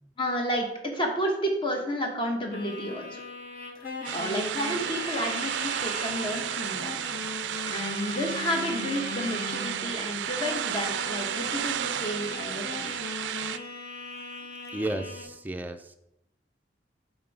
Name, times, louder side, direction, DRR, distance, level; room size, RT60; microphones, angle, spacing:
voice 1, 0.2-3.2 4.1-6.9 7.6-12.9, equal, 30° left, 2 dB, 1.1 m, -31 dB
sound 1, 2.5-10.0 10.4-15.2, left 3 dB, 55° left, 0.9 m, -39 dB
sound 2, 4.0-13.6, right 10 dB, 75° right, 0.3 m, -33 dB
voice 2, 14.7-15.9, right 1 dB, 10° right, 6 dB, 0.4 m, -33 dB
5.9 x 3.9 x 4.7 m, 0.83 s
head